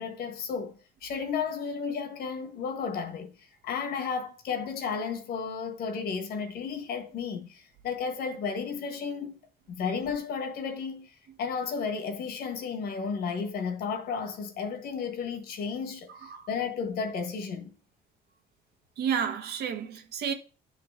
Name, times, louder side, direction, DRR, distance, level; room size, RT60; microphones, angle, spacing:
voice 1, 0.0-9.4 9.7-17.7, left 5 dB, 70° left, 1.4 m, -33 dB
voice 2, 19.0-20.3, right 7 dB, 70° right, 1.2 m, -31 dB
10.5 x 3.9 x 3.6 m
cardioid pair, 110°, 17 cm